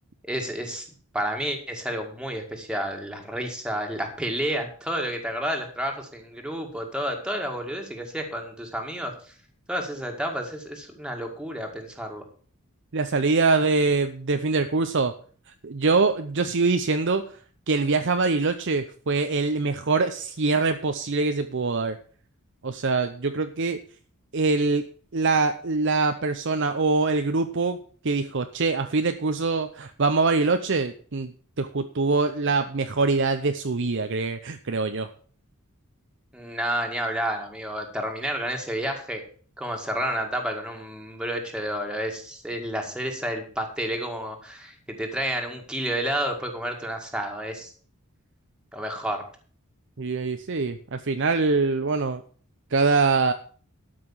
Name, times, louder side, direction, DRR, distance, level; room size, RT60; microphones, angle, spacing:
voice 1, 0.3-0.9 1.1-9.3 9.7-12.2 36.3-39.2 39.6-47.7 48.7-49.2, equal, 5° right, 2 dB, 2.0 m, -30 dB
voice 2, 12.9-15.1 15.6-17.4 17.7-22.0 22.6-23.8 24.3-24.8 25.1-27.8 28.0-35.1 50.0-52.2 52.7-53.3, right 3 dB, 55° right, 8 dB, 0.7 m, -24 dB
13.0 x 5.9 x 7.3 m, 0.43 s
head